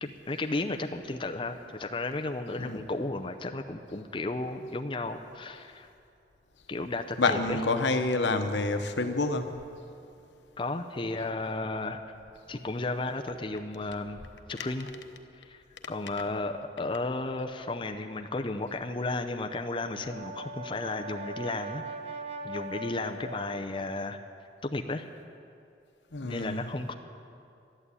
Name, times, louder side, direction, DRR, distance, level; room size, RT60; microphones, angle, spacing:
voice 1, 0.0-5.9 6.7-7.6 10.6-12.0 12.5-14.2 14.5-14.9 15.4-21.8 22.4-24.2 24.6-25.1 26.2-26.9, left 2 dB, 30° left, 5 dB, 0.5 m, -34 dB
voice 2, 7.2-9.5 26.1-26.7, left 3 dB, 85° left, 7 dB, 1.0 m, -28 dB
Brass instrument, 19.7-24.0, right 2 dB, 35° right, 0.8 m, -40 dB
12.5 x 11.5 x 8.3 m, 2.6 s
head